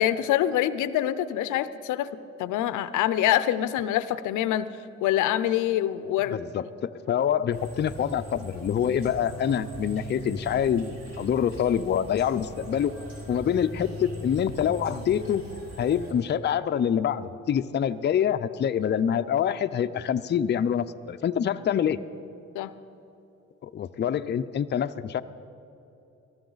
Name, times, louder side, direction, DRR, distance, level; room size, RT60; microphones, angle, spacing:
voice 1, 0.0-4.7 5.0-6.4 22.5-22.7, left 12 dB, 85° left, 15 dB, 0.6 m, -25 dB
voice 2, 6.3-13.0 13.3-15.4 15.8-22.0 23.6-25.2, left 9 dB, 35° left, 9 dB, 0.5 m, -26 dB
sound 1, 7.5-16.1, right 1 dB, 60° right, 4.0 m, -40 dB
18.0 x 13.5 x 4.0 m, 2.9 s
cardioid pair, 90°, 30 cm